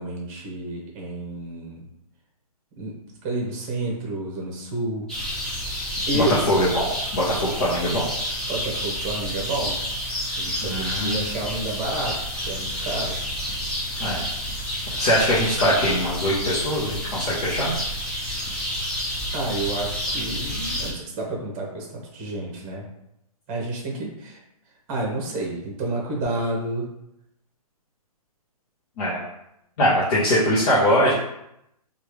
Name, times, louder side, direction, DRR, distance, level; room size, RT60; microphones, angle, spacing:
voice 1, 0.0-1.8 2.8-2.9 3.2-5.1 6.1-6.5 8.5-9.8 10.4-13.2 19.3-22.9 23.5-24.4 24.9-26.9, right 2 dB, 25° right, -1 dB, 1.0 m, -30 dB
sound 1, 5.1-20.9, equal, 5° left, 0.5 m, -29 dB
voice 2, 6.1-6.9 7.1-8.0 10.6-11.2 14.0-14.2 15.0-17.7 29.0-29.2 29.8-31.1, equal, 40° left, -8 dB, 0.8 m, -22 dB
3.1 x 2.4 x 3.1 m, 0.81 s
hypercardioid pair, 150°, 19 cm